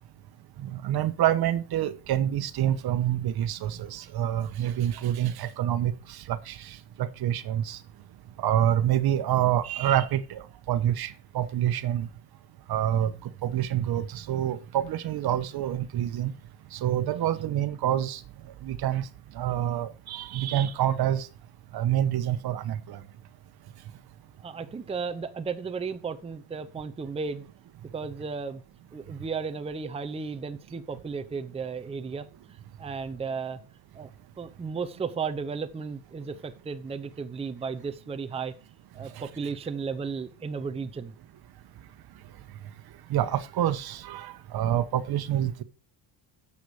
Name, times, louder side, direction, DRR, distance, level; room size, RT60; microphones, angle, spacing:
voice 1, 0.6-5.9 6.3-6.6 7.0-7.8 8.4-10.4 10.7-12.1 12.7-13.1 13.4-16.3 16.8-18.2 18.6-19.0 19.4-21.3 21.7-23.0 39.2-39.3 43.1-45.6, right 11 dB, 55° right, 1.0 m, -27 dB
voice 2, 24.4-27.5 27.9-28.6 28.9-33.6 34.0-34.1 34.4-38.5 38.9-41.1, right 5 dB, 15° right, 0.6 m, -34 dB
10.5 x 7.1 x 4.7 m
cardioid pair, 140°, 45 cm